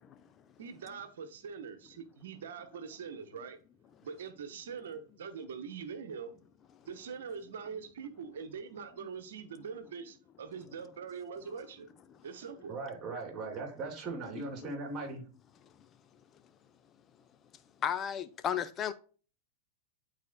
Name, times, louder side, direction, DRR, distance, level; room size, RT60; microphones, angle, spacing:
voice 1, 0.6-3.6 4.0-6.3 6.8-11.9 12.2-12.7, right 6 dB, 70° right, 1.0 m, -43 dB
voice 2, 12.7-15.2, right 3 dB, 30° right, 3.0 m, -39 dB
voice 3, 17.8-18.9, left 9 dB, 30° left, 0.7 m, -33 dB
11.5 x 4.2 x 2.2 m
hypercardioid pair, 95°, 0 cm